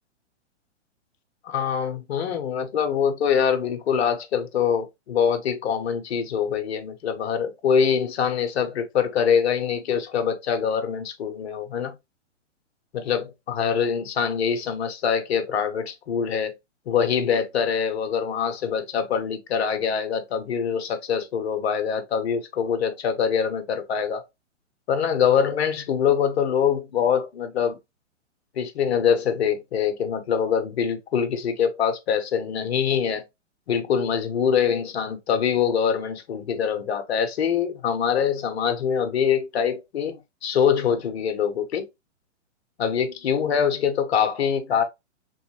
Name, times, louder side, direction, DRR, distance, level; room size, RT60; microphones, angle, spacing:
voice 1, 1.4-11.9 12.9-16.5 16.9-24.2 24.9-27.8 28.6-33.2 33.7-41.9 42.8-44.8, left 7 dB, 60° left, 0.9 m, -24 dB
3.1 x 3.0 x 2.9 m
figure-of-eight pair, 120°, 37 cm